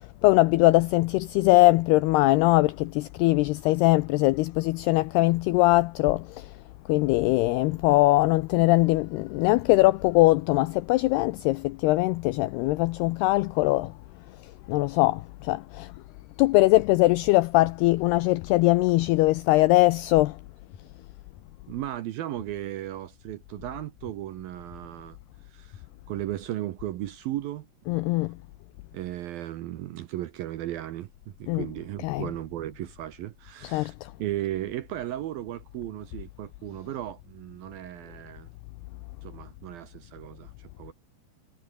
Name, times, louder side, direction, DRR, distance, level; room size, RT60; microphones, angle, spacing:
voice 1, 0.2-6.5 6.9-13.9 14.7-15.9 16.4-20.4 27.9-28.3 31.5-31.7 32.0-32.2 33.7-34.1, left 19 dB, 90° left, 2.3 m, -21 dB
sound 1, 19.0-19.1 19.7-19.8 20.7-20.8 21.4-21.5 22.4-22.5 23.0-23.1 24.0-24.1 24.7-24.8 25.7-25.8 26.4-26.5, left 8 dB, 50° left, 4.2 m, -48 dB
voice 2, 21.7-25.2 25.5-25.8 26.1-27.7 28.9-31.1 31.4-33.9 34.2-38.5 39.2-40.9, right 13 dB, 75° right, 2.3 m, -35 dB
omnidirectional pair, 5.3 m